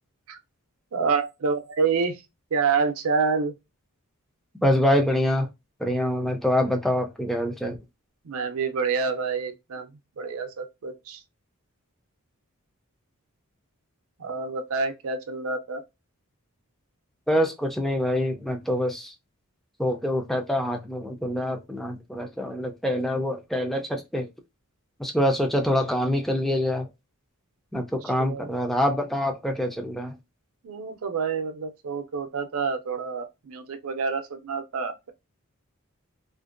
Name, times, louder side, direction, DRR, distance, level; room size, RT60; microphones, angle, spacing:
voice 1, 0.9-2.2 2.5-3.6 8.2-9.9 10.2-11.2 14.2-15.8 27.7-27.8 28.2-28.5 30.6-35.1, right 5 dB, 70° right, 0.5 m, -28 dB
voice 2, 4.6-5.5 5.8-7.8 17.3-19.1 19.8-24.3 25.0-26.9 27.7-30.2, left 1 dB, ahead, 0.3 m, -25 dB
2.5 x 2.1 x 2.4 m
head